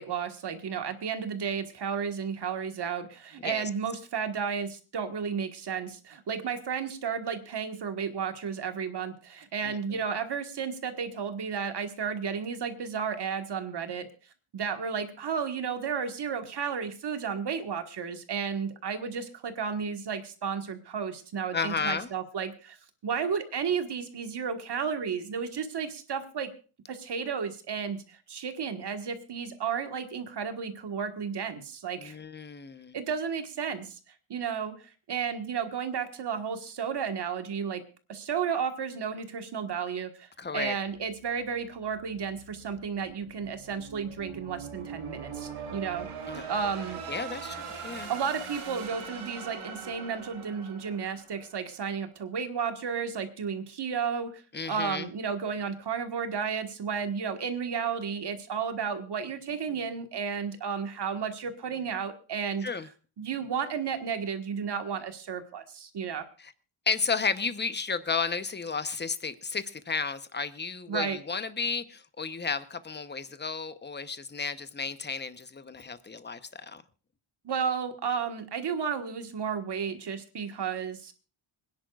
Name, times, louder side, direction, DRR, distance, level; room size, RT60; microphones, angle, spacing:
voice 1, 0.0-14.1 14.5-22.8 23.0-26.5 26.9-32.2 32.9-34.0 34.3-37.8 38.1-46.1 46.3-47.0 47.5-47.6 48.1-54.4 54.7-62.7 63.2-66.2 70.9-71.2 77.4-81.1, right 6 dB, 55° right, 1.6 m, -33 dB
voice 2, 21.5-22.1 32.0-33.0 40.4-40.8 46.3-46.4 47.1-48.1 54.5-55.1 62.6-62.9 66.4-66.5 66.9-76.8, left 5 dB, 20° left, 0.9 m, -33 dB
sound 1, 40.9-51.9, right 5 dB, 90° right, 3.5 m, -42 dB
26.0 x 10.5 x 2.4 m
wide cardioid pair, 145°, 49 cm